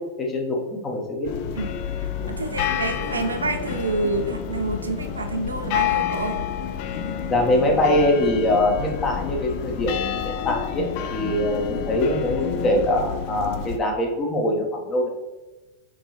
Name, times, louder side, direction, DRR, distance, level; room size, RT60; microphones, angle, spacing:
voice 1, 0.2-1.3 2.2-2.3 7.3-15.1, left 1 dB, 25° left, 0 dB, 0.9 m, -23 dB
sound 1, 1.2-13.8, left 8 dB, 45° left, 0.3 m, -29 dB
voice 2, 2.3-6.4, right 3 dB, 75° right, 6 dB, 0.4 m, -28 dB
3.8 x 3.7 x 3.0 m, 1.1 s
figure-of-eight pair, 90°, 0 cm